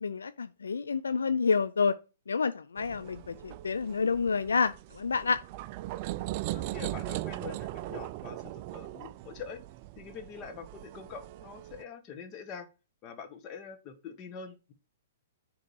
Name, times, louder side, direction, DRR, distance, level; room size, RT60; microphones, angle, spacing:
voice 1, 0.0-1.9 2.3-5.4, left 5 dB, 75° left, 0.3 m, -29 dB
sound 1, 2.8-11.8, right 16 dB, 40° right, 0.3 m, -39 dB
voice 2, 6.5-9.6 10.0-12.7 13.0-14.7, left 6 dB, 30° left, 1.4 m, -44 dB
6.6 x 3.7 x 4.7 m
figure-of-eight pair, 115°, 0 cm